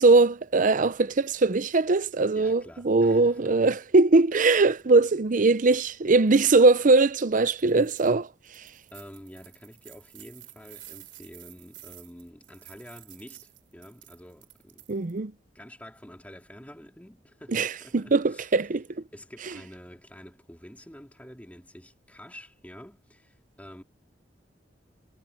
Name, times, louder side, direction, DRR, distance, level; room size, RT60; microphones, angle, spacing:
voice 1, 0.0-8.3 14.9-15.3 17.5-18.8, right 3 dB, 45° right, 0.6 m, -21 dB
voice 2, 2.3-3.8 8.7-14.9 15.5-18.4 19.1-23.8, equal, 10° left, 3.1 m, -48 dB
sound 1, 7.6-8.1 8.5-15.2, right 15 dB, 80° right, 3.1 m, -51 dB
head